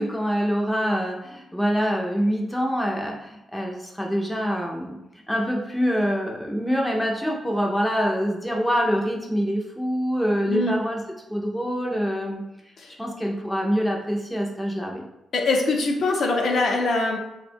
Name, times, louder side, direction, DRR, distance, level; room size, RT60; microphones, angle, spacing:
voice 1, 0.0-4.9 5.3-11.0 11.3-12.4 13.0-15.0, equal, 5° left, -1 dB, 0.5 m, -25 dB
voice 2, 15.3-17.2, left 3 dB, 55° left, 1 dB, 0.6 m, -23 dB
3.4 x 2.2 x 4.4 m, 0.92 s
wide cardioid pair, 150°, 0 cm